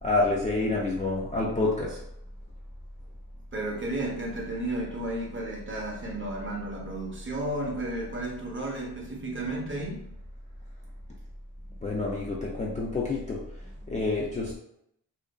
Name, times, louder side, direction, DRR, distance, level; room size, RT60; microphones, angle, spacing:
voice 1, 0.0-2.0 11.8-14.6, left 2 dB, 20° left, -5 dB, 0.3 m, -28 dB
voice 2, 3.5-10.0, right 1 dB, 30° right, -1 dB, 0.7 m, -33 dB
2.5 x 2.2 x 2.2 m, 0.74 s
wide cardioid pair, 85°, 41 cm